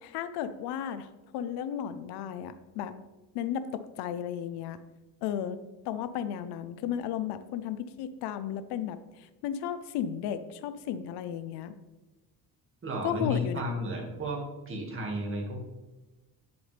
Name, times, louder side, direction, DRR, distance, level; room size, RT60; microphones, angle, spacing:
voice 1, 0.0-2.9 3.3-4.8 5.2-5.6 5.8-11.7 13.0-13.6, left 9 dB, 85° left, 12 dB, 0.7 m, -34 dB
voice 2, 12.8-15.6, equal, 30° right, 0 dB, 2.0 m, -33 dB
9.4 x 6.9 x 3.4 m, 1.1 s
cardioid pair, 115°, 39 cm